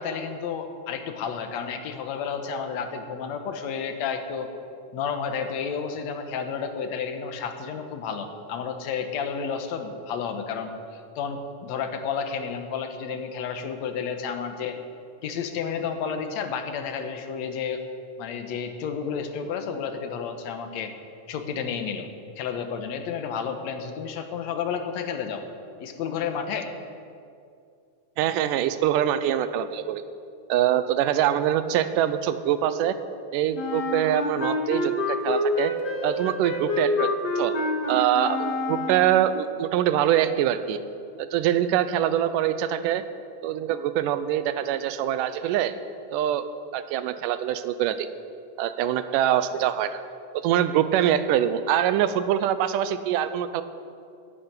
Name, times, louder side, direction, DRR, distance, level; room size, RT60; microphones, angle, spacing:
voice 1, 0.0-4.5 4.9-14.8 15.2-17.8 18.2-20.9 21.3-22.1 22.4-25.4 25.8-26.7, left 6 dB, 65° left, 7 dB, 2.1 m, -31 dB
voice 2, 28.2-30.0 30.5-33.0 33.3-35.7 36.0-37.1 37.4-37.5 37.9-40.8 41.2-43.0 43.4-45.8 46.1-46.5 46.7-48.1 48.6-50.0 50.3-53.6, right 11 dB, 85° right, 12 dB, 2.3 m, -24 dB
Wind instrument woodwind instrument, 33.5-39.3, left 1 dB, 45° left, 1.5 m, -27 dB
12.0 x 8.9 x 9.6 m, 2.4 s
omnidirectional pair, 3.7 m